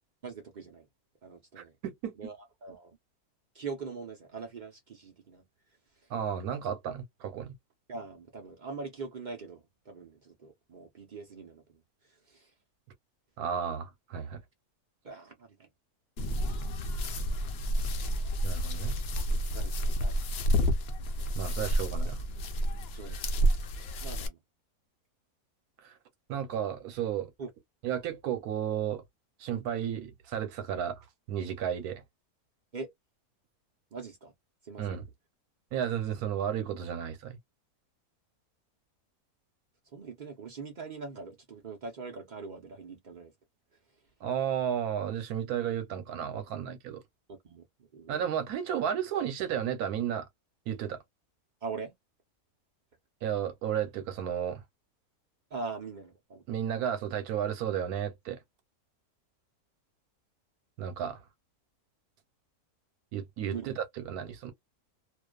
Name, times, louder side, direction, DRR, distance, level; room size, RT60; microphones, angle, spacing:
voice 1, 0.2-0.9 1.2-1.7 2.2-3.0 3.5-5.4 7.9-11.8 12.1-12.5 15.0-15.7 19.5-19.7 20.0-20.1 20.4-20.5 21.7-21.8 22.9-23.4 24.0-24.4 27.4-27.5 32.7-32.9 33.9-34.3 34.6-35.0 39.9-43.3 47.3-48.3 51.6-51.9 55.5-56.4 63.5-63.7, right 4 dB, 50° right, 0.5 m, -42 dB
voice 2, 1.6-2.1 6.1-7.5 13.4-14.4 18.4-19.0 21.3-22.2 25.8-26.0 26.3-27.3 27.8-29.0 29.4-32.0 34.8-35.1 35.7-37.4 44.2-47.0 48.1-50.3 50.7-51.0 53.2-54.6 56.5-58.4 60.8-61.2 63.1-64.5, right 9 dB, 80° right, 1.2 m, -33 dB
sound 1, 16.2-24.3, equal, 65° left, 0.6 m, -30 dB
2.4 x 2.3 x 2.2 m
omnidirectional pair, 1.6 m